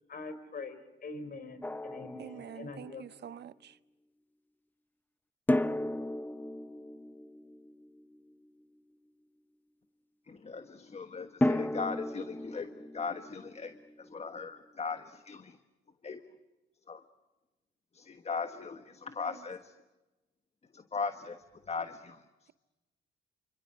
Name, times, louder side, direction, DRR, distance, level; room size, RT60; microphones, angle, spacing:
voice 1, 0.1-3.0, left 3 dB, 50° left, 4.0 m, -44 dB
Drum, 1.6-3.0 5.5-8.5 11.4-14.3, left 1 dB, 10° left, 0.9 m, -34 dB
voice 2, 2.2-3.8 19.3-19.4, right 9 dB, 60° right, 0.8 m, -46 dB
voice 3, 10.3-15.6 16.0-16.2 16.9-17.0 17.9-19.7 20.7-22.2, left 5 dB, 30° left, 1.4 m, -39 dB
28.5 x 26.0 x 6.5 m
cardioid pair, 90°, 20 cm